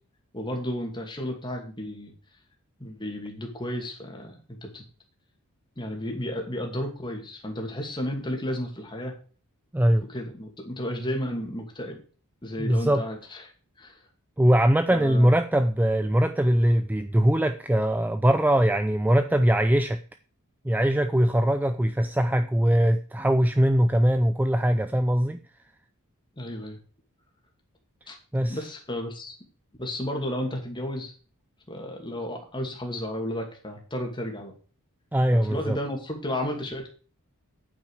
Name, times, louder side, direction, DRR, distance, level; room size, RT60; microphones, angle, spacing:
voice 1, 0.3-2.1 2.8-4.8 5.8-9.1 10.1-12.0 12.4-13.4 13.8-14.0 14.9-15.3 26.4-26.8 28.1-28.2 28.5-29.4 29.8-31.1 31.7-34.5 35.3-36.9, left 1 dB, 20° left, 2.4 m, -33 dB
voice 2, 9.7-10.0 12.6-13.0 14.4-20.0 20.6-25.4 28.3-28.6 35.1-35.8, equal, 10° right, 0.4 m, -21 dB
8.8 x 8.7 x 4.9 m
head